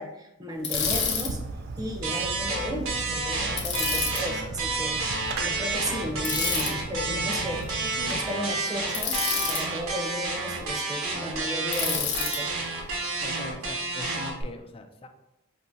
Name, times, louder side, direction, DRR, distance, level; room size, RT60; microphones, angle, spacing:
voice 1, 0.0-1.4 1.8-9.2 9.5-12.5, equal, 20° right, 1 dB, 0.6 m, -34 dB
Bicycle, 0.6-1.3 3.6-4.2 6.2-6.7 8.9-9.6 11.7-12.4, left 6 dB, 60° left, 0.7 m, -28 dB
Fireworks, 0.7-8.2, right 3 dB, 50° right, 0.4 m, -38 dB
sound 1, 2.0-14.4, right 3 dB, 85° right, 1.0 m, -30 dB
voice 2, 13.2-15.1, left 2 dB, 25° left, 6 dB, 0.4 m, -41 dB
5.1 x 2.7 x 2.6 m, 0.91 s
head